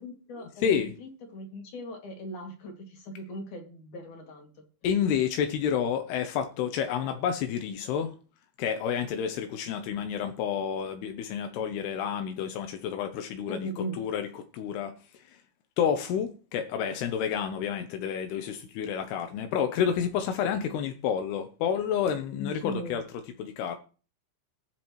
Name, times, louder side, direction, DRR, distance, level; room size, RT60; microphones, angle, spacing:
voice 1, 0.0-4.5 13.5-14.0 22.4-23.0, equal, 55° left, 3.7 m, -39 dB
voice 2, 0.6-1.0 4.8-8.1 8.6-13.7 13.9-14.3 14.5-14.9 15.8-23.0 23.4-23.8, left 8 dB, 85° left, 2.9 m, -29 dB
20.5 x 7.5 x 3.1 m
omnidirectional pair, 4.6 m